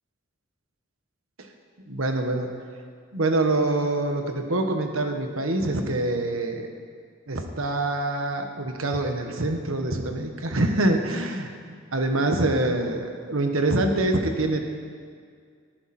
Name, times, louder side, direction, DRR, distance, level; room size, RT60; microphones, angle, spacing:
voice 1, 1.9-2.5 3.1-6.7 7.3-11.5 11.9-14.7, right 2 dB, 90° right, 4 dB, 1.5 m, -25 dB
19.0 x 14.0 x 4.4 m, 2.1 s
head